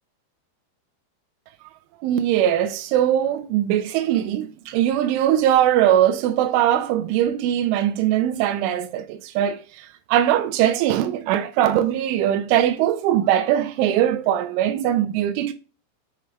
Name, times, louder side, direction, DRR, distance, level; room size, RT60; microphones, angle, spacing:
voice 1, 2.0-15.5, right 11 dB, 85° right, 2.9 m, -21 dB
7.8 x 4.9 x 3.3 m
omnidirectional pair, 5.8 m